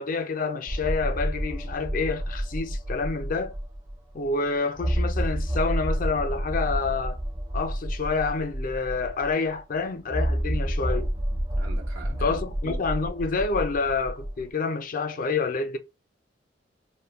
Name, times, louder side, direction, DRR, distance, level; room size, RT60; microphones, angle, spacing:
voice 1, 0.0-3.5 4.1-7.2 7.5-11.1 12.2-15.8, left 4 dB, 50° left, 0.4 m, -28 dB
sound 1, 0.7-3.9 4.3-4.4 4.8-9.3 10.1-14.4, equal, 25° right, 0.5 m, -29 dB
voice 2, 11.6-12.4 12.6-12.8, right 2 dB, 85° right, 0.6 m, -42 dB
2.1 x 2.1 x 3.4 m
head